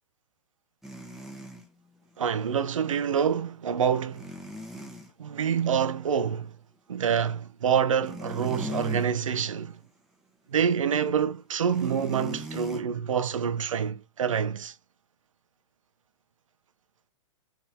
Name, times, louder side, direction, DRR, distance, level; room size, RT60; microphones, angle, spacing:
sound 1, 0.8-1.7 4.1-5.1 7.8-9.1 9.6-9.8 11.7-12.8, left 1 dB, ahead, 0.7 m, -38 dB
voice 1, 2.2-4.3 5.2-6.5 6.9-9.8 10.5-14.7, right 7 dB, 70° right, 0.5 m, -26 dB
3.8 x 2.8 x 4.4 m
figure-of-eight pair, 115°, 17 cm